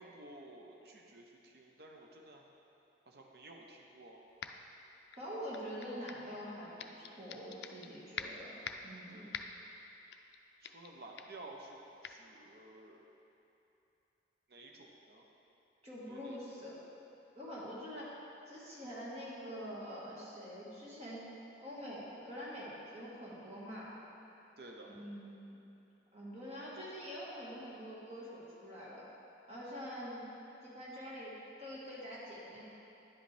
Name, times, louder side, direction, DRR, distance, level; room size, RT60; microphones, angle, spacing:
voice 1, 0.0-2.4 3.1-4.2 9.1-9.5 10.6-13.0 14.5-15.2 16.1-16.4 24.6-25.0, right 2 dB, 55° right, 0 dB, 0.8 m, -53 dB
sound 1, 4.4-4.7 5.1-6.3 6.8-7.9 8.2-8.9 9.3-9.7 10.1-10.4 10.6-10.9 11.2-11.4 12.0-12.2, left 7 dB, 65° left, 0.4 m, -45 dB
voice 2, 5.2-8.6 8.8-9.2 15.8-16.8 17.3-18.2 18.5-21.2 21.6-23.9 24.9-25.6 26.1-29.0 29.5-30.3 30.6-32.6, equal, 35° right, -7 dB, 1.7 m, -45 dB
10.0 x 7.8 x 3.3 m, 3.0 s
head